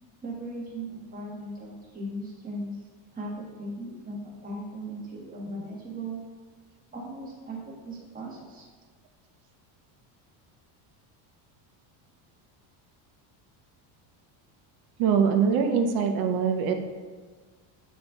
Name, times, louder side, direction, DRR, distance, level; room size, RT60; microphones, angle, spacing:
voice 1, 0.2-2.8 3.1-6.2 6.9-7.6 7.9-8.7, right 1 dB, 20° right, -4 dB, 1.4 m, -37 dB
voice 2, 15.0-16.7, right 6 dB, 50° right, 5 dB, 0.6 m, -23 dB
8.6 x 3.9 x 3.5 m, 1.4 s
cardioid pair, 170°, 47 cm